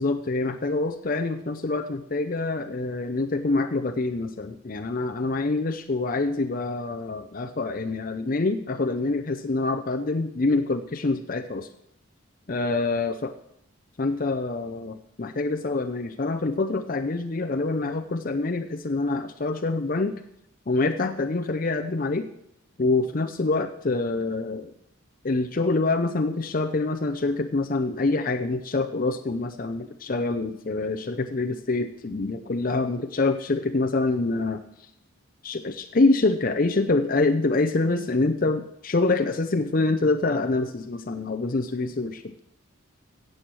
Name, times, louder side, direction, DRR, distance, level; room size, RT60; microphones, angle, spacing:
voice 1, 0.0-11.7 12.5-13.3 14.0-20.2 20.7-22.3 22.8-24.7 25.2-34.6 35.4-42.4, left 3 dB, 40° left, 5 dB, 0.6 m, -26 dB
16.0 x 7.8 x 6.2 m, 0.79 s
head